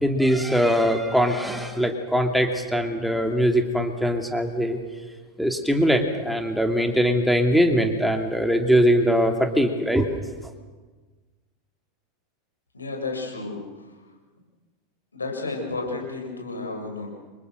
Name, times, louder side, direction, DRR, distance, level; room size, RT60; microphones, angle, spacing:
voice 1, 0.0-4.8 5.4-10.2, equal, ahead, 4 dB, 2.8 m, -21 dB
voice 2, 12.7-13.9 15.1-17.1, left 3 dB, 80° left, 1 dB, 7.1 m, -32 dB
29.5 x 25.5 x 6.6 m, 1.3 s
figure-of-eight pair, 85°, 0 cm